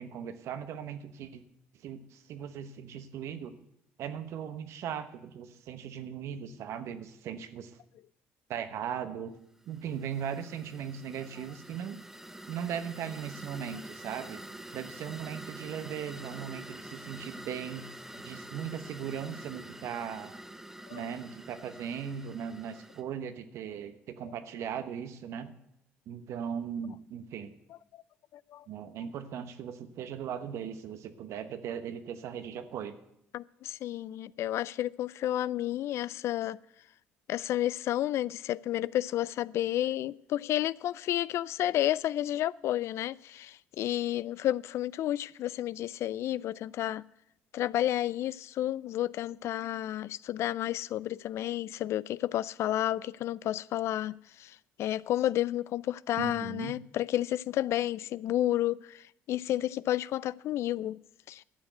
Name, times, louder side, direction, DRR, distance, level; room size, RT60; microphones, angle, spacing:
voice 1, 0.0-1.4 1.8-3.6 4.0-7.7 8.5-9.3 9.7-12.0 12.5-14.4 14.7-17.9 18.2-20.3 20.9-25.5 26.1-27.5 28.7-33.0 56.2-56.8, right 8 dB, 65° right, 1.1 m, -38 dB
sound 1, 9.6-23.0, right 1 dB, 10° right, 1.0 m, -47 dB
voice 2, 28.3-28.6 33.3-36.6 37.3-47.0 47.5-61.0 61.3-61.4, left 13 dB, 60° left, 0.3 m, -31 dB
12.0 x 7.1 x 7.9 m
supercardioid pair, 70°, 5 cm